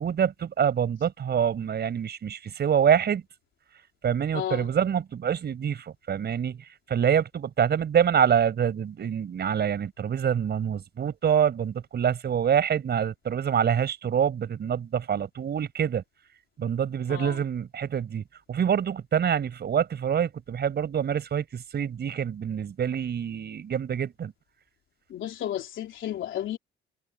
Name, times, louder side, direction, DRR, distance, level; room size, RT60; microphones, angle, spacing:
voice 1, 0.0-3.2 4.0-16.0 16.6-18.2 18.5-24.3, right 8 dB, 55° right, 5.9 m, -26 dB
voice 2, 4.3-4.7 17.1-17.4 25.1-26.6, left 11 dB, 75° left, 3.5 m, -33 dB
cardioid pair, 90°, 20 cm